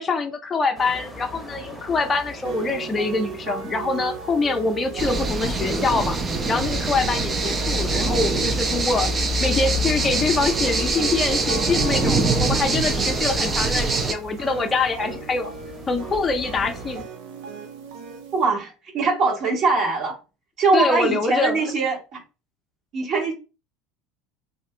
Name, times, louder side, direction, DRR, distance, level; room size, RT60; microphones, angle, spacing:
voice 1, 0.0-6.2 6.5-9.1 9.4-15.5 15.9-17.1 20.7-21.6, left 3 dB, 25° left, 0.5 m, -24 dB
sound 1, 0.7-17.0, left 1 dB, ahead, 0.9 m, -43 dB
sound 2, 2.4-18.5, right 7 dB, 75° right, 0.6 m, -37 dB
sound 3, 5.0-14.1, right 2 dB, 25° right, 0.5 m, -23 dB
voice 2, 18.3-20.1 20.6-22.2 22.9-23.3, right 3 dB, 50° right, 1.3 m, -22 dB
2.7 x 2.5 x 3.2 m
supercardioid pair, 95°, 0 cm